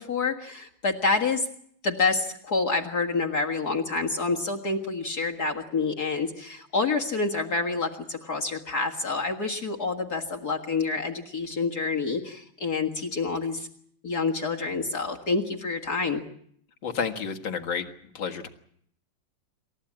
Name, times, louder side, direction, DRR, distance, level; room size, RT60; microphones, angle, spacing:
voice 1, 0.0-1.5 1.8-13.7 14.0-16.2, left 4 dB, 45° left, 0 dB, 2.2 m, -28 dB
voice 2, 16.8-17.9 18.1-18.5, left 6 dB, 60° left, 6 dB, 2.4 m, -30 dB
28.0 x 14.5 x 8.7 m, 0.67 s
omnidirectional pair, 2.4 m